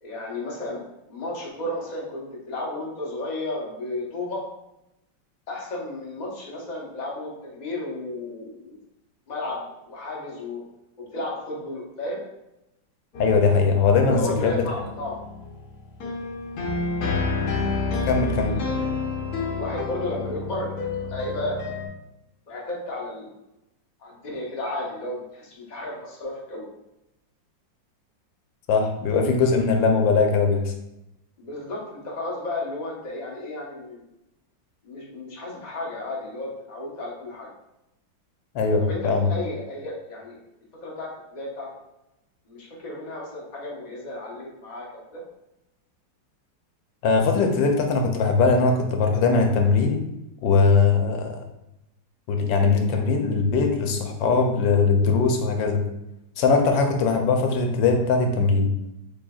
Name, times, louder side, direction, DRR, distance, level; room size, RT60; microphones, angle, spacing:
voice 1, 0.0-0.8 1.1-4.4 5.5-8.8 9.3-10.6 11.0-12.2 14.1-15.2 18.4-18.9 19.5-20.7 21.1-21.6 22.5-23.4 24.0-26.7 31.4-34.0 34.8-37.5 38.8-40.4 40.8-41.7 42.5-45.2, left 2 dB, 30° left, -4 dB, 0.9 m, -33 dB
sound 1, 13.1-21.9, left 4 dB, 60° left, 1.3 m, -29 dB
voice 2, 13.2-14.6 18.1-18.6 28.7-30.7 38.5-39.3 47.0-50.0 50.4-51.3 52.3-55.8 56.4-58.7, left 4 dB, 85° left, 4 dB, 1.4 m, -20 dB
6.4 x 3.4 x 2.3 m, 0.89 s
omnidirectional pair, 2.0 m